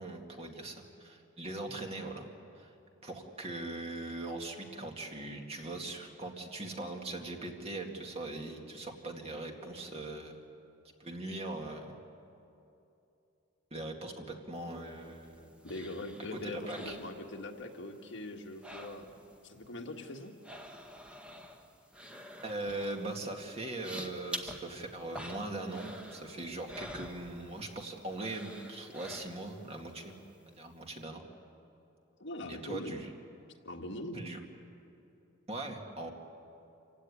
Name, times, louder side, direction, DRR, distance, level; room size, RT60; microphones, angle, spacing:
voice 1, 0.0-2.3 2.5-2.7 3.0-10.3 11.0-12.0 13.7-15.5 16.3-17.0 22.4-30.2 30.5-31.2 32.5-33.1 34.1-34.4 35.5-36.1, right 2 dB, 30° right, 2 dB, 2.2 m, -40 dB
sound 1, 14.7-17.8 18.0-19.4 19.6-27.8 28.1-29.7 30.1-30.2, equal, 5° right, 1.5 m, -47 dB
voice 2, 15.6-19.1 19.4-20.3 32.2-33.0 33.7-34.2, left 1 dB, 60° left, 3 dB, 1.8 m, -42 dB
27.0 x 16.5 x 9.9 m, 2.8 s
head